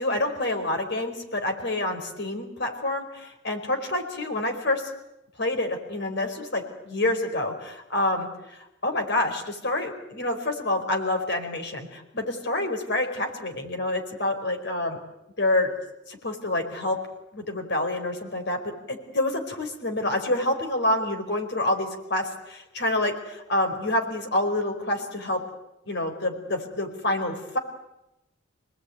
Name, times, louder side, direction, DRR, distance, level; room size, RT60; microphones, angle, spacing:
voice 1, 0.0-4.9 5.4-15.0 15.4-15.7 16.1-17.0 17.3-25.4 25.9-27.6, left 1 dB, 55° left, 6 dB, 4.8 m, -27 dB
27.5 x 19.0 x 9.5 m, 0.92 s
head